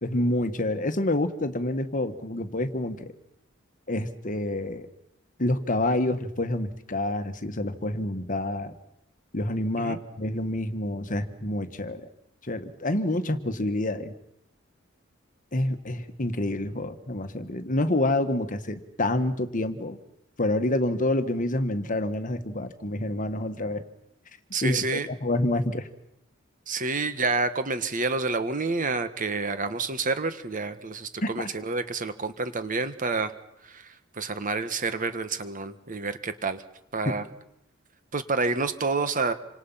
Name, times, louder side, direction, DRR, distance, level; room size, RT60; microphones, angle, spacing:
voice 1, 0.0-3.1 3.9-4.9 5.4-8.7 9.3-12.1 12.4-14.1 15.5-20.0 20.4-23.8 24.6-25.9 31.2-31.5, left 1 dB, 40° left, 9 dB, 1.6 m, -28 dB
voice 2, 24.5-25.1 26.7-33.3 33.6-36.6 36.9-37.2 38.1-39.3, right 3 dB, 40° right, 11 dB, 1.5 m, -28 dB
27.5 x 26.0 x 5.8 m, 0.83 s
head